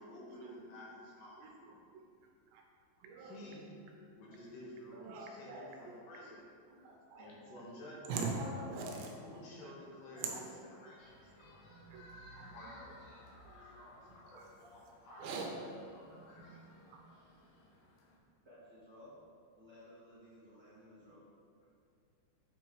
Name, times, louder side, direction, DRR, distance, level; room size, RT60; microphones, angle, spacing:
voice 1, 0.0-1.4 3.2-3.7 4.1-6.5 7.2-8.2 8.9-10.4 10.7-11.1 12.5-15.3 15.9-16.6, left 1 dB, 70° left, -5 dB, 3.4 m, -52 dB
voice 2, 1.4-2.0 2.5-2.6 3.0-3.6 4.9-6.1 6.7-10.7 11.2-11.3 11.7-13.1 13.4-13.5 14.1-14.5 15.1-15.6 16.0-16.6 16.9-17.0, right 3 dB, 80° right, 1 dB, 2.9 m, -45 dB
sound 1, 11.0-18.2, left 1 dB, 90° left, 3.7 m, -58 dB
voice 3, 18.4-19.2 19.5-21.2, left 1 dB, 40° right, -13 dB, 1.4 m, -57 dB
8.6 x 5.2 x 4.7 m, 2.4 s
omnidirectional pair, 5.3 m